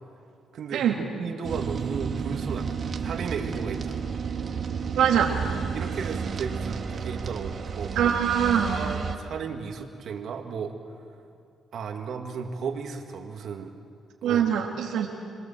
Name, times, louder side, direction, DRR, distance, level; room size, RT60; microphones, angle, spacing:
voice 1, 0.5-4.1 5.7-8.1 8.7-10.7 11.7-13.7 14.2-14.4, right 6 dB, 65° right, 3 dB, 2.4 m, -34 dB
sound 1, 1.4-9.2, right 6 dB, 50° right, 2.0 m, -31 dB
voice 2, 4.9-5.3 8.0-8.8 14.2-15.1, right 9 dB, 80° right, 0 dB, 2.1 m, -23 dB
27.0 x 21.0 x 7.6 m, 2.4 s
cardioid pair, 90°, 0 cm